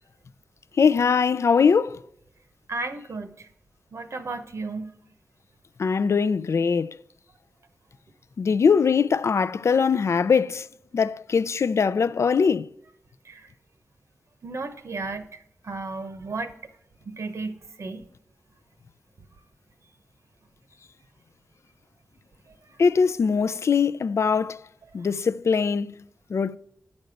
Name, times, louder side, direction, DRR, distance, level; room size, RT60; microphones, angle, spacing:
voice 1, 0.8-2.0 5.8-6.9 8.4-10.7 10.9-12.7 22.8-24.6 24.9-25.9 26.3-26.6, left 5 dB, 65° left, 0.4 m, -21 dB
voice 2, 2.7-3.5 3.9-4.9 13.2-13.5 14.4-15.3 15.6-16.5 17.1-18.0, right 3 dB, 65° right, 0.9 m, -33 dB
9.0 x 5.3 x 7.7 m
wide cardioid pair, 85°, 5 cm